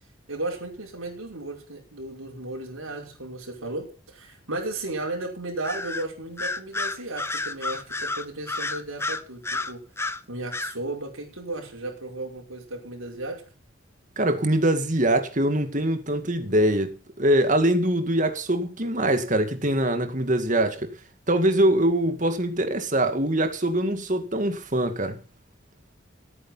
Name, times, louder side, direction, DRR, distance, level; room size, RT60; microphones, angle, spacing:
voice 1, 0.3-9.9 10.3-13.4, right 2 dB, 90° right, 5.5 m, -34 dB
Bird vocalization bird call bird song, 5.6-6.1 6.4-10.2 10.5-10.8, left 3 dB, 10° left, 0.7 m, -30 dB
voice 2, 14.2-20.9 21.3-25.2, right 1 dB, 40° right, 2.1 m, -23 dB
15.5 x 9.4 x 5.7 m
head